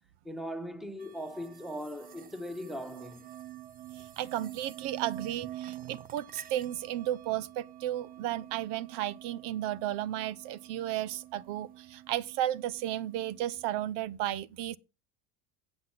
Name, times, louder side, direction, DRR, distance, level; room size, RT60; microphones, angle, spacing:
voice 1, 0.2-3.3, equal, ahead, 1.2 m, -39 dB
sound 1, 1.0-13.9, right 12 dB, 20° right, 0.5 m, -48 dB
voice 2, 3.9-14.8, right 13 dB, 65° right, 0.7 m, -34 dB
7.8 x 7.8 x 5.7 m
supercardioid pair, 115°, 43 cm